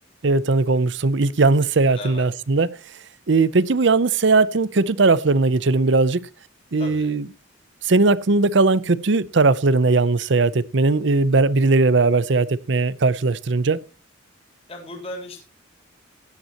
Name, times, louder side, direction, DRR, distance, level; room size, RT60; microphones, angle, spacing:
voice 1, 0.2-2.7 3.3-6.3 6.7-7.3 7.8-13.8, right 3 dB, 60° right, 0.6 m, -19 dB
voice 2, 1.9-2.3 6.8-7.2 14.7-15.4, left 1 dB, 30° left, 3.4 m, -36 dB
16.5 x 11.0 x 2.9 m
head